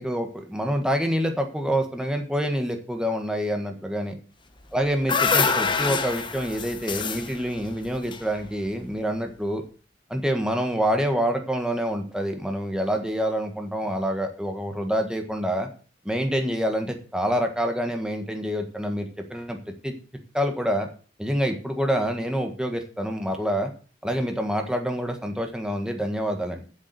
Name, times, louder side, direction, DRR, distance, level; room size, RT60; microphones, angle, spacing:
voice 1, 0.0-4.1 4.7-9.6 10.1-15.7 16.0-19.6 19.8-19.9 20.3-20.9 21.2-23.7 24.0-26.6, equal, 5° right, 4 dB, 1.5 m, -27 dB
sound 1, 4.6-8.9, left 5 dB, 25° left, 0.9 m, -26 dB
8.1 x 7.3 x 7.0 m, 0.40 s
head